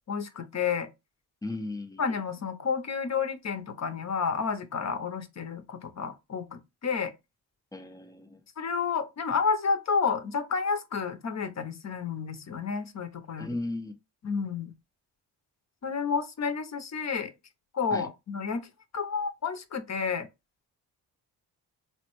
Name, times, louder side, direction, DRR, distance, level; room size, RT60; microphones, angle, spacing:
voice 1, 0.1-0.9 2.0-7.1 8.6-13.5 14.2-14.7 15.8-17.3 17.7-18.7 18.9-20.3, left 5 dB, 40° left, 0.8 m, -30 dB
voice 2, 1.4-2.1 7.7-8.4 13.3-13.9 17.9-18.1, left 2 dB, 10° left, 0.5 m, -36 dB
4.1 x 2.1 x 3.0 m
supercardioid pair, 55°, 42 cm